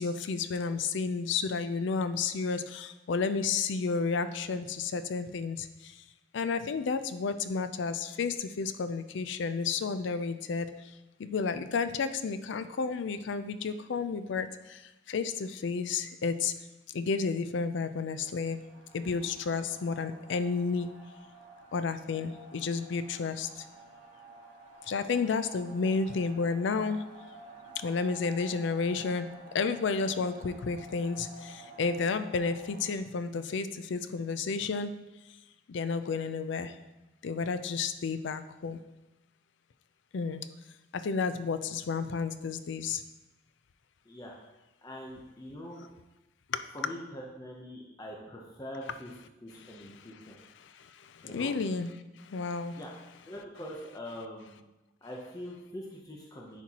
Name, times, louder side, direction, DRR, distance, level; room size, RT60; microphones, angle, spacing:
voice 1, 0.0-5.9 6.3-10.7 11.2-14.8 15.1-16.5 16.9-18.6 18.9-20.9 21.7-23.6 24.9-27.0 27.8-29.3 29.5-34.9 35.7-36.7 37.2-38.8 40.1-40.4 40.9-43.0 46.5-46.6 50.6-51.9 52.2-52.8, left 4 dB, 70° left, 12 dB, 0.4 m, -31 dB
sound 1, 18.3-33.0, right 2 dB, 75° right, 1.9 m, -52 dB
voice 2, 44.8-45.9 46.7-49.1 49.4-50.4 51.2-51.5 52.8-52.9 53.2-54.6 55.0-56.6, equal, 20° left, -2 dB, 0.7 m, -43 dB
9.9 x 4.4 x 2.9 m, 1.0 s
head